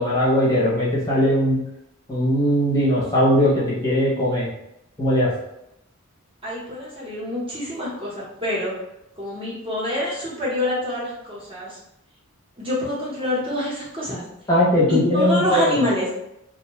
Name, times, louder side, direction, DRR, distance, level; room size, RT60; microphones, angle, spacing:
voice 1, 0.0-1.6 2.1-4.5 5.0-5.3 14.5-15.8, equal, 15° left, -8 dB, 0.8 m, -19 dB
voice 2, 6.4-8.7 9.2-11.8 12.6-14.2 14.9-16.1, left 1 dB, 25° right, -7 dB, 0.8 m, -26 dB
2.6 x 2.2 x 2.9 m, 0.83 s
head